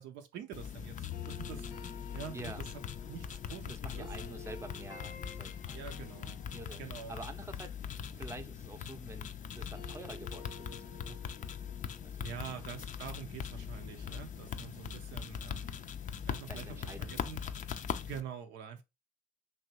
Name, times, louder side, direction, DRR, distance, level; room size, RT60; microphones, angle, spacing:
voice 1, 0.0-1.7 2.1-2.7 3.1-4.1 5.7-6.4 6.8-7.1 12.2-15.8 16.3-17.4 18.0-18.8, right 8 dB, 70° right, 0.5 m, -46 dB
sound 1, 0.5-18.2, left 8 dB, 40° left, 0.4 m, -41 dB
sound 2, 1.1-9.2 9.5-14.4, left 3 dB, 90° left, 0.7 m, -53 dB
voice 2, 2.3-2.6 3.7-5.9 6.5-7.7 8.1-11.4 12.0-12.2 12.6-12.7 16.5-17.5, right 2 dB, 15° right, 0.6 m, -48 dB
3.0 x 2.6 x 2.9 m
hypercardioid pair, 50°, 20 cm